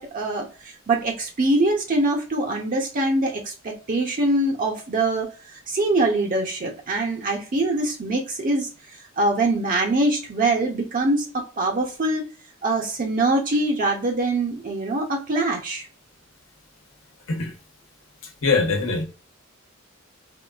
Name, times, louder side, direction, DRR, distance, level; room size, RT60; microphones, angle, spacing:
voice 1, 0.0-8.7 9.2-12.3 12.6-15.9, right 2 dB, 40° right, 1 dB, 0.5 m, -23 dB
voice 2, 18.2-19.0, left 4 dB, 85° left, 2 dB, 1.0 m, -23 dB
3.7 x 2.4 x 2.3 m, 0.34 s
head